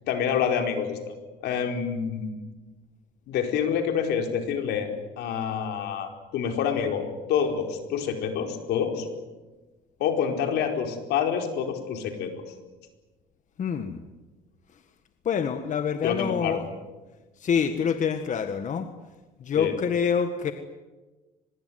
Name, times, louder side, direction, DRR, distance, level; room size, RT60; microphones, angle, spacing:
voice 1, 0.1-1.1 1.4-2.4 3.3-4.9 5.2-9.1 10.0-12.3 16.0-16.6 19.5-19.8, left 7 dB, 80° left, 4 dB, 4.7 m, -27 dB
voice 2, 13.6-14.0 15.3-16.7 17.4-18.9 19.4-20.5, left 7 dB, 45° left, 8 dB, 1.7 m, -26 dB
24.5 x 21.5 x 9.5 m, 1.2 s
cardioid pair, 110°, 17 cm